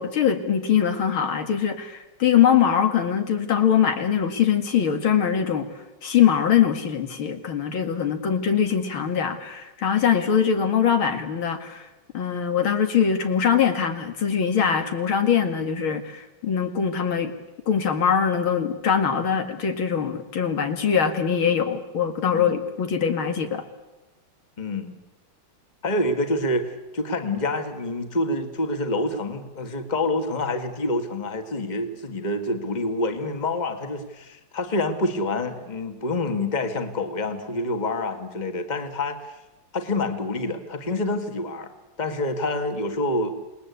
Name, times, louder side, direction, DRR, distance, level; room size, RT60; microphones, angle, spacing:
voice 1, 0.0-5.7 6.0-11.9 12.1-17.3 17.7-23.6, left 8 dB, 75° left, 7 dB, 2.9 m, -22 dB
voice 2, 24.6-24.9 25.8-39.4 39.7-41.7 42.0-43.3, left 2 dB, 20° left, 7 dB, 1.9 m, -27 dB
28.5 x 20.0 x 8.3 m, 1.0 s
omnidirectional pair, 2.3 m